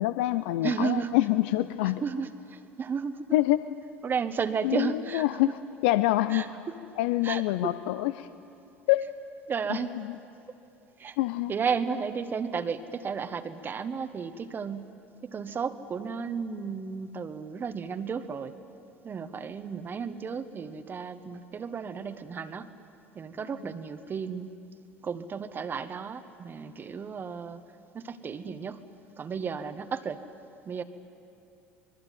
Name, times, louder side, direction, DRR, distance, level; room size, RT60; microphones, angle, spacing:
voice 1, 0.0-2.0 3.3-3.6 4.6-6.5 7.0-8.3 8.9-9.1 9.7-10.2 11.2-11.5, left 16 dB, 70° left, 13 dB, 0.6 m, -26 dB
voice 2, 0.6-1.1 2.0-3.4 4.0-5.2 6.3-6.5 7.2-7.4 9.5-9.9 11.0-11.2 11.5-14.9 15.2-18.5 19.0-22.7 23.1-24.5 25.0-27.6 27.9-28.8 29.2-30.2 30.7-30.8, right 6 dB, 35° right, 9 dB, 1.4 m, -33 dB
26.0 x 21.5 x 9.3 m, 2.7 s
hypercardioid pair, 75°, 6 cm